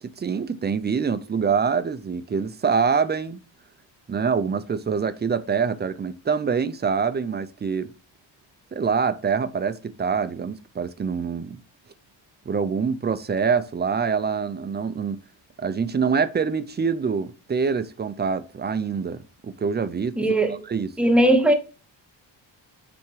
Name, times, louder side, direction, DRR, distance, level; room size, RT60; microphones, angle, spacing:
voice 1, 0.0-3.4 4.1-7.9 8.7-11.6 12.5-15.2 15.6-20.2 20.7-20.9, right 6 dB, 25° right, 0.3 m, -25 dB
voice 2, 20.2-20.5 21.0-21.5, right 1 dB, ahead, 0.7 m, -18 dB
7.3 x 3.5 x 4.6 m
wide cardioid pair, 175°, 47 cm